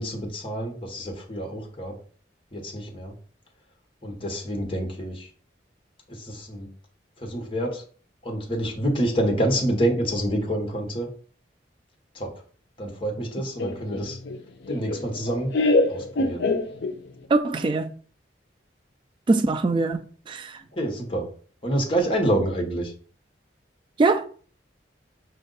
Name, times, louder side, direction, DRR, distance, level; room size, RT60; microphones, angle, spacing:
voice 1, 0.0-1.9 2.5-3.1 4.0-5.3 6.1-6.7 7.2-7.8 8.2-11.1 12.1-12.4 12.8-14.2 14.7-15.5 15.9-16.5 20.7-21.3 21.6-22.9, right 1 dB, 30° left, 1.1 m, -27 dB
Laughter, 13.6-17.2, left 2 dB, 65° left, 0.5 m, -25 dB
voice 2, 17.3-17.9 19.3-20.6 24.0-24.3, right 3 dB, 25° right, 0.3 m, -22 dB
5.4 x 2.5 x 3.9 m
head